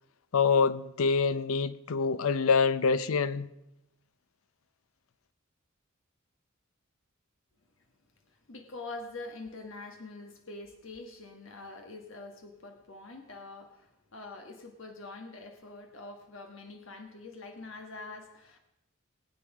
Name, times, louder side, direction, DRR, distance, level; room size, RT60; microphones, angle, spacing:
voice 1, 0.3-3.5, left 5 dB, 85° left, 0.6 m, -26 dB
voice 2, 8.5-18.6, left 3 dB, 65° left, 1.5 m, -45 dB
20.0 x 8.7 x 4.9 m
head